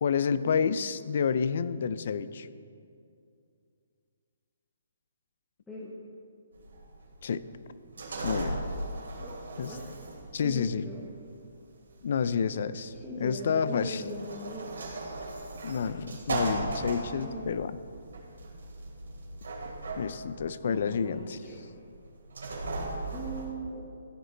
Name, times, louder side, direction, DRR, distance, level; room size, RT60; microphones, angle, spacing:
voice 1, 0.0-2.5 7.2-7.4 8.2-8.6 9.6-9.7 10.3-10.8 12.0-14.0 15.6-17.8 20.0-21.4, left 6 dB, 40° left, 15 dB, 0.4 m, -29 dB
sound 1, 6.5-23.4, right 2 dB, 80° right, 3.1 m, -38 dB
voice 2, 10.4-11.0 12.9-14.7 16.7-17.6 20.6-21.6 23.1-23.8, right 1 dB, 5° left, -9 dB, 1.0 m, -40 dB
14.5 x 9.7 x 3.9 m, 2.4 s
hypercardioid pair, 175°, 0 cm